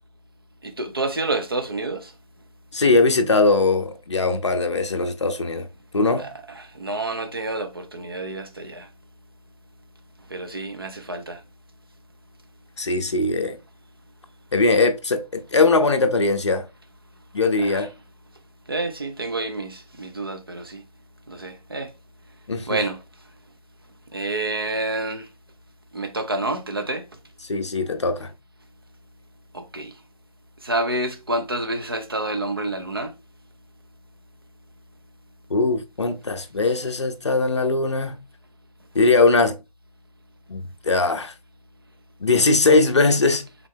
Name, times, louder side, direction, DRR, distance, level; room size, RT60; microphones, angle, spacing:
voice 1, 0.6-2.1 6.2-8.9 10.3-11.4 17.6-17.9 18.7-20.8 21.3-21.9 22.7-23.0 24.1-25.3 25.9-27.1 29.5-29.9 30.6-33.1, right 2 dB, 40° right, 0.5 m, -28 dB
voice 2, 2.7-5.7 5.9-6.3 12.8-13.6 14.5-16.6 17.3-17.9 22.5-22.8 27.5-28.3 35.5-38.2 38.9-39.5 40.5-41.3 42.2-43.4, left 3 dB, 50° left, 0.6 m, -20 dB
3.6 x 3.2 x 3.4 m
figure-of-eight pair, 175°, 19 cm